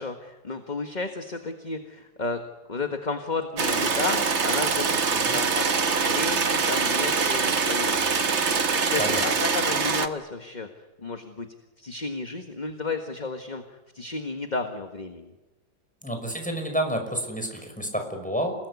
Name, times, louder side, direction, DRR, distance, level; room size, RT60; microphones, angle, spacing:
voice 1, 0.0-2.4 2.7-5.7 6.0-10.7 11.0-11.5 11.8-15.3, left 3 dB, 25° left, 6 dB, 1.5 m, -33 dB
sound 1, 3.6-10.1, right 5 dB, 40° right, 1.5 m, -24 dB
voice 2, 16.0-18.5, right 1 dB, 5° left, 4 dB, 5.8 m, -29 dB
29.0 x 19.0 x 9.8 m, 1.1 s
omnidirectional pair, 2.1 m